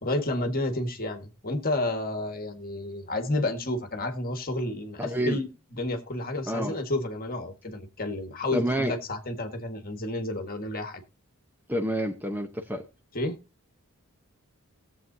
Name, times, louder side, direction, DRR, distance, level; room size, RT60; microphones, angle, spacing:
voice 1, 0.0-11.0 13.1-13.4, left 1 dB, 40° left, 7 dB, 1.6 m, -31 dB
voice 2, 5.0-5.4 6.5-6.7 8.5-8.9 11.7-12.8, equal, 10° right, 6 dB, 0.8 m, -28 dB
18.0 x 7.6 x 2.7 m, 0.30 s
head